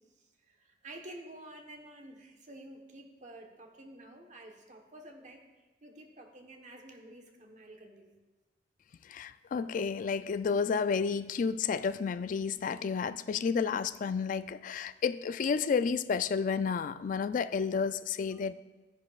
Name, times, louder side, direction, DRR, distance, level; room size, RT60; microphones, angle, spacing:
voice 1, 0.5-5.4 5.8-8.2 18.3-18.4, right 1 dB, 45° right, 3 dB, 1.1 m, -50 dB
voice 2, 9.1-18.5, left 5 dB, 50° left, 13 dB, 0.3 m, -31 dB
12.0 x 10.5 x 2.4 m, 1.1 s
head